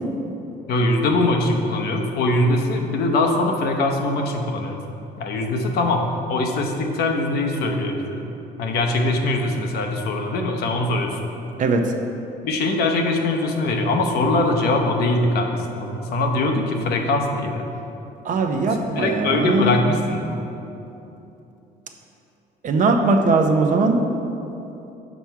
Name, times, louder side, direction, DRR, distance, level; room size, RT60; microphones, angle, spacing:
voice 1, 0.7-4.8 5.2-8.2 8.6-11.2 12.4-17.6 18.7-20.4, left 2 dB, 70° left, 2 dB, 0.8 m, -22 dB
voice 2, 18.2-19.8 22.6-24.1, right 3 dB, 50° right, 4 dB, 0.6 m, -19 dB
6.1 x 5.8 x 4.6 m, 2.9 s
cardioid pair, 110°, 17 cm